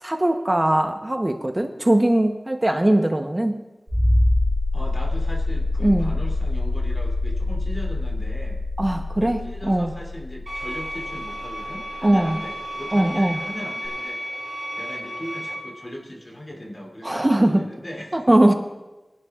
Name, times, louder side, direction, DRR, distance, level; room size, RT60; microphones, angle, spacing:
voice 1, 0.0-3.6 5.8-6.1 8.8-9.4 9.7-9.9 12.0-12.4 12.9-13.4 17.0-17.6 18.1-18.5, right 1 dB, 25° right, 5 dB, 0.9 m, -20 dB
sound 1, 3.9-12.3 13.8-13.9, left 2 dB, 20° left, 4.3 m, -25 dB
voice 2, 4.7-8.6 9.2-14.5 14.8-18.3, equal, 40° left, 0 dB, 2.8 m, -38 dB
sound 2, 10.5-15.5, equal, 5° right, 4.6 m, -33 dB
23.5 x 11.5 x 2.4 m, 1.1 s
wide cardioid pair, 70°, 0 cm